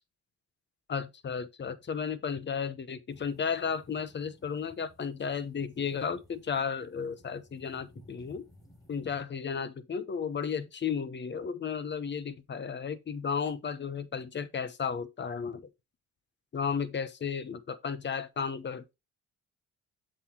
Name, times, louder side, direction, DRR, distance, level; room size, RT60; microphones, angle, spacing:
voice 1, 0.9-8.4 8.9-15.7 16.5-18.9, left 6 dB, 35° left, 0.9 m, -34 dB
sound 1, 3.1-9.2, left 1 dB, 10° left, 2.9 m, -58 dB
7.6 x 6.2 x 2.9 m
cardioid pair, 90°, 30 cm